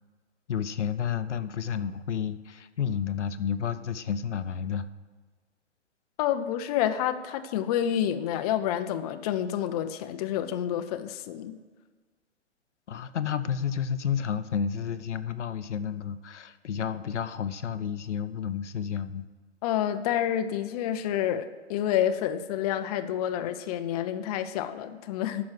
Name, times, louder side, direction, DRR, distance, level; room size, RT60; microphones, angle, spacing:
voice 1, 0.5-4.9 12.9-19.3, left 8 dB, 75° left, 12 dB, 0.7 m, -31 dB
voice 2, 6.2-11.6 19.6-25.5, left 10 dB, 35° left, 9 dB, 0.6 m, -28 dB
9.5 x 6.2 x 7.6 m, 1.5 s
figure-of-eight pair, 120°, 35 cm